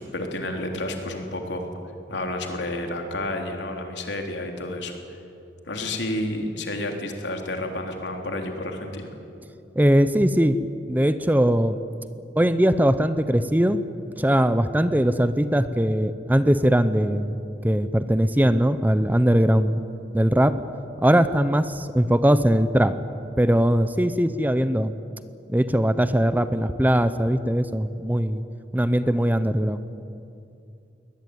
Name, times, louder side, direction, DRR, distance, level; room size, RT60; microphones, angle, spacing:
voice 1, 0.0-1.7 2.1-5.0 5.7-9.1, left 1 dB, 85° left, 3 dB, 3.3 m, -30 dB
voice 2, 9.8-10.6 10.9-11.8 12.4-13.8 14.2-17.4 17.6-19.8 20.1-20.6 21.0-22.9 23.4-24.9 25.5-28.4 28.7-29.8, equal, 10° right, 12 dB, 0.7 m, -20 dB
23.0 x 19.0 x 9.5 m, 2.6 s
head